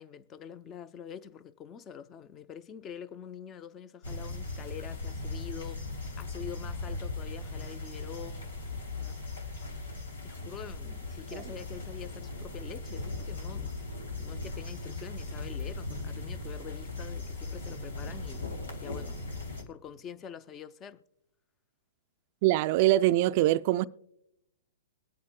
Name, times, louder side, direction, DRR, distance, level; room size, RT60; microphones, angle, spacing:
voice 1, 0.0-5.8 6.2-8.5 9.0-9.2 10.2-13.7 14.0-19.2 19.7-21.0, left 8 dB, 25° left, 0.5 m, -45 dB
sound 1, 4.0-19.6, left 3 dB, 90° left, 2.8 m, -38 dB
voice 2, 22.4-23.9, right 15 dB, 45° right, 0.3 m, -23 dB
22.5 x 8.4 x 2.2 m
hypercardioid pair, 140°, 0 cm